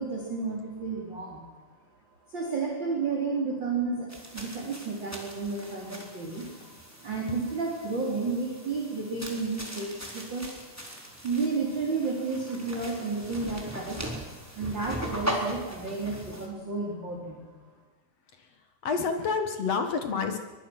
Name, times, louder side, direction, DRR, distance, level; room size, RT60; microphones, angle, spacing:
voice 1, 0.0-1.4 2.3-6.5 7.0-10.5 11.2-17.5, right 4 dB, 25° right, -2 dB, 3.8 m, -32 dB
sound 1, 4.1-16.5, right 1 dB, 5° right, 3.0 m, -39 dB
voice 2, 18.8-20.4, left 5 dB, 55° left, 6 dB, 1.8 m, -28 dB
23.5 x 22.5 x 6.2 m, 1.2 s
omnidirectional pair, 5.2 m